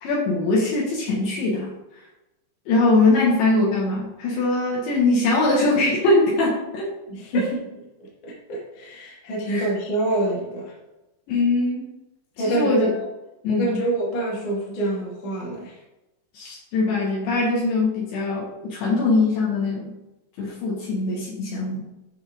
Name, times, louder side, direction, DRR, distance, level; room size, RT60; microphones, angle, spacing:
voice 1, 0.0-1.7 2.7-6.9 7.3-7.5 9.5-9.7 11.3-11.9 12.4-13.0 13.4-13.8 16.3-20.0 20.4-21.8, left 2 dB, 65° left, -5 dB, 3.7 m, -22 dB
voice 2, 7.1-7.6 8.2-10.7 12.4-13.1 13.5-15.8, right 2 dB, 45° left, -4 dB, 3.3 m, -26 dB
11.0 x 6.4 x 3.7 m, 0.97 s
omnidirectional pair, 5.7 m